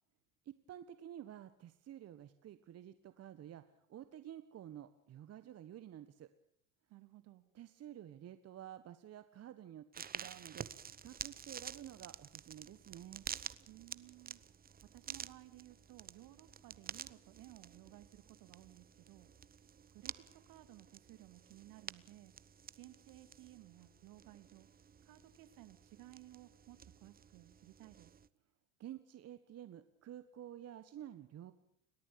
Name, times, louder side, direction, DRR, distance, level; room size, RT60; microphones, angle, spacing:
voice 1, 0.4-3.6 3.9-6.3 7.5-10.7 11.0-13.2 28.8-31.5, right 11 dB, 40° right, 11 dB, 1.5 m, -51 dB
voice 2, 6.9-7.4 13.7-14.4 14.9-19.3 19.9-22.3 22.7-24.7 25.0-28.1, right 16 dB, 55° right, 11 dB, 2.6 m, -58 dB
sound 1, 9.9-28.3, right 7 dB, 25° right, 1.0 m, -50 dB
30.0 x 13.5 x 8.7 m, 0.69 s
hypercardioid pair, 80°, 39 cm